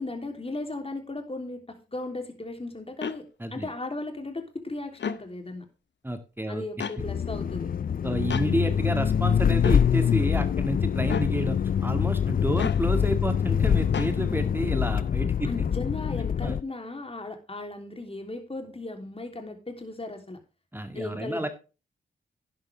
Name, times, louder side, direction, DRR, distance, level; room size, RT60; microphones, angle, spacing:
voice 1, 0.0-3.2 3.5-5.6 6.5-7.7 15.4-20.4 20.9-21.5, left 2 dB, 25° left, 5 dB, 3.3 m, -36 dB
sound 1, 3.0-3.2 4.9-5.2 6.8-7.0 8.3-8.5 9.6-9.8 11.1-11.3 12.6-12.8 13.9-14.2, left 7 dB, 60° left, 0.9 m, -31 dB
voice 2, 6.0-6.6 8.0-15.5 16.4-16.6 20.7-21.5, right 1 dB, 10° right, 7 dB, 2.1 m, -30 dB
sound 2, 7.0-16.6, left 8 dB, 45° left, 0.4 m, -25 dB
11.0 x 11.0 x 3.5 m, 0.32 s
supercardioid pair, 40°, 21 cm